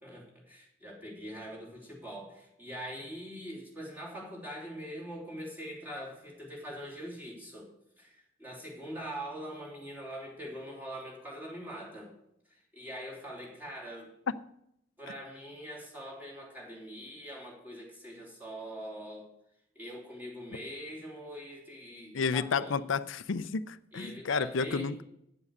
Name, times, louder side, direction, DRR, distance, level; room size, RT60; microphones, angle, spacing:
voice 1, 0.0-7.7 8.0-12.1 12.5-14.1 15.0-19.3 19.7-22.8 23.9-24.9, equal, 10° right, 3.1 m, -43 dB
voice 2, 22.1-25.0, left 5 dB, 85° left, 0.5 m, -31 dB
9.6 x 7.3 x 6.5 m
head